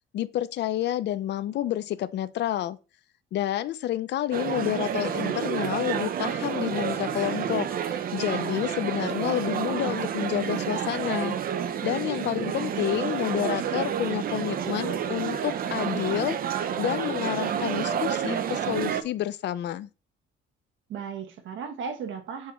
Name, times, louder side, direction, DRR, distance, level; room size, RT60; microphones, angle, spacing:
voice 1, 0.1-2.8 3.3-11.4 11.8-16.4 16.8-19.9, left 12 dB, 55° left, 0.4 m, -29 dB
sound 1, 4.3-19.0, right 8 dB, 45° right, 0.6 m, -29 dB
voice 2, 12.3-12.6 20.9-22.5, right 6 dB, 65° right, 1.3 m, -36 dB
4.7 x 4.2 x 5.5 m
cardioid pair, 145°, 21 cm